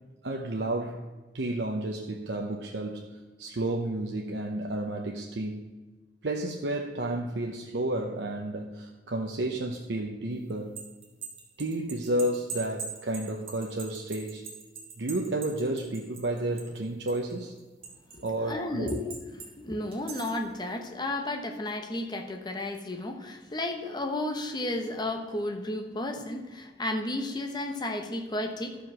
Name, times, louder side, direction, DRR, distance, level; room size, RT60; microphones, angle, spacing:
voice 1, 0.2-1.0 1.3-5.6 6.2-10.7 11.6-14.4 15.0-17.5 18.2-19.0, right 1 dB, 70° right, 1 dB, 0.8 m, -31 dB
sound 1, 10.5-16.8 17.1-18.3 18.9-19.5 19.9-20.4, right 5 dB, 35° right, 1.9 m, -42 dB
voice 2, 18.1-28.8, left 1 dB, 25° left, 5 dB, 1.0 m, -33 dB
13.0 x 5.1 x 6.1 m, 1.2 s
head